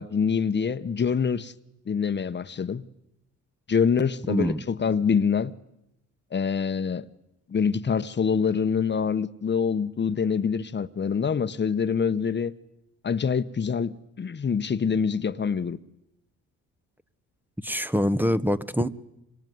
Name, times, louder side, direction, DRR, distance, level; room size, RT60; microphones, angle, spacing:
voice 1, 0.0-1.5 1.9-2.8 3.7-5.5 6.3-7.1 7.5-12.5 13.0-15.8, left 6 dB, 35° left, 1.2 m, -25 dB
voice 2, 4.3-4.6 17.6-18.9, equal, 5° right, 1.2 m, -24 dB
26.0 x 24.0 x 9.5 m
cardioid pair, 90°, 30 cm